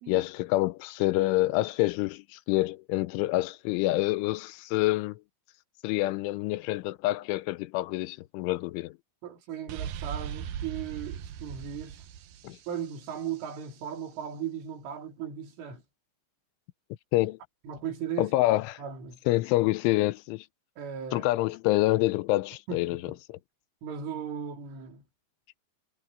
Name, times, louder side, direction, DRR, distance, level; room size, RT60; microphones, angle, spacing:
voice 1, 0.1-5.2 5.8-9.0 12.4-12.6 17.1-17.4 18.2-18.8 19.3-20.5 21.1-23.0 23.3-23.4, left 18 dB, 85° left, 3.2 m, -27 dB
voice 2, 9.2-12.0 12.7-15.8 17.6-18.3 18.8-19.2 20.8-21.3 22.7-23.2 23.8-25.0, right 8 dB, 90° right, 6.0 m, -37 dB
sound 1, 9.7-13.4, right 9 dB, 70° right, 2.3 m, -38 dB
omnidirectional pair, 5.5 m